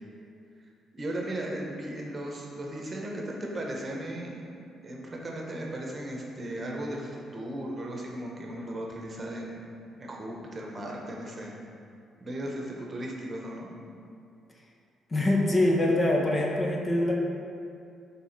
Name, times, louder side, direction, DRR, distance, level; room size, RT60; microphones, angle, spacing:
voice 1, 0.9-4.5 4.8-9.6 10.0-11.6 12.2-13.7, right 1 dB, 30° right, -1 dB, 1.0 m, -36 dB
voice 2, 15.1-17.1, left 1 dB, 30° left, -1 dB, 0.9 m, -24 dB
6.8 x 3.6 x 4.3 m, 2.5 s
cardioid pair, 90°, 0 cm